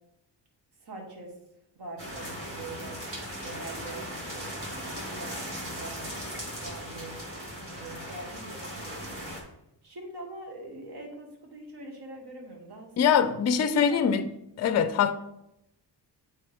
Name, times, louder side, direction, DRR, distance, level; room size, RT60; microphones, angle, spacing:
voice 1, 0.8-1.4 1.7-3.0 3.4-4.5 5.1-7.2 7.6-9.3 9.8-13.5 13.9-14.1, right 2 dB, 60° right, 1.7 m, -44 dB
sound 1, 2.0-9.4, equal, 30° right, 2.1 m, -38 dB
voice 2, 13.0-14.3 14.6-15.1, left 7 dB, 40° left, 0.5 m, -23 dB
8.4 x 4.2 x 3.5 m
cardioid pair, 110°, 44 cm